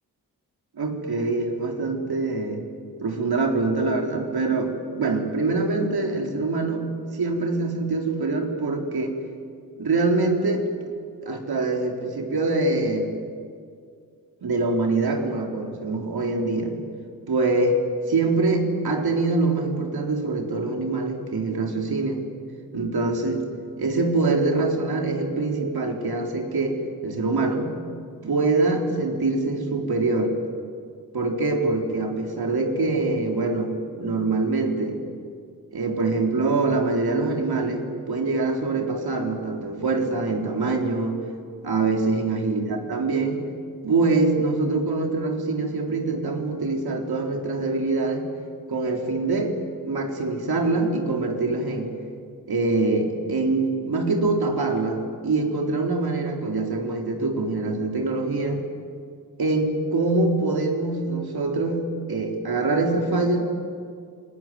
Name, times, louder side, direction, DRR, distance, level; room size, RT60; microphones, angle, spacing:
voice 1, 0.8-2.6 3.0-6.9 7.1-9.1 9.8-10.7 11.2-13.1 14.4-16.8 17.3-17.8 18.1-22.2 22.7-23.4 23.8-27.8 28.2-30.3 31.1-33.7 34.0-35.0 35.7-41.2 41.6-43.4 43.8-48.3 48.7-49.5 49.8-51.9 52.5-58.6 59.4-63.5, right 3 dB, 70° right, 2 dB, 4.1 m, -24 dB
27.5 x 20.0 x 9.4 m, 2.2 s
cardioid pair, 50°, 38 cm